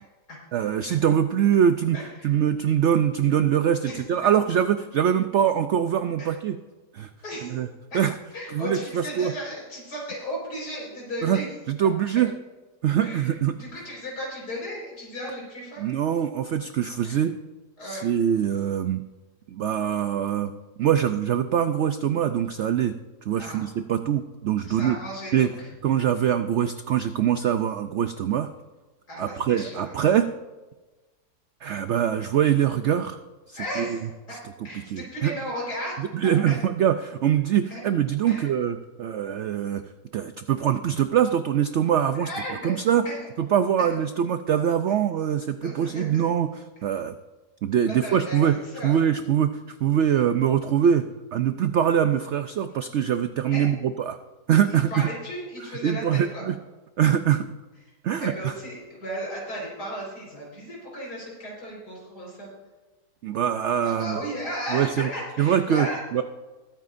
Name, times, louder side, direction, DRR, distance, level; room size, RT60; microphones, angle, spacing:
voice 1, 0.5-2.0 2.2-6.6 6.9-7.1 7.4-7.7 7.9-8.1 8.5-9.3 11.2-11.4 11.7-12.3 12.8-13.5 15.8-17.3 17.8-19.0 19.5-20.5 20.8-22.9 23.2-25.0 25.3-25.5 25.8-28.5 29.2-30.3 31.6-33.2 33.5-34.0 34.9-35.3 36.0-39.8 40.1-42.3 42.6-43.0 43.4-47.2 47.6-48.5 48.8-51.0 51.3-54.2 54.5-55.1 55.8-56.6 57.0-57.5 58.0-58.5 63.2-64.2 64.7-65.1 65.4-66.2, right 9 dB, 85° right, 9 dB, 0.6 m, -23 dB
voice 2, 1.9-2.3 3.8-4.0 6.2-6.3 7.2-7.6 7.9-8.0 8.3-11.5 13.0-15.9 17.0-17.2 17.8-18.1 23.4-23.7 24.6-25.7 29.1-29.9 33.6-34.4 34.6-36.5 37.7-37.8 38.3-38.5 41.9-42.8 43.1-43.2 43.8-43.9 45.6-46.2 47.8-48.4 48.7-49.0 53.5-53.7 54.7-56.5 58.2-62.5 63.8-66.0, equal, 70° left, -3 dB, 5.1 m, -35 dB
21.0 x 9.2 x 2.6 m, 1.2 s
omnidirectional pair, 1.8 m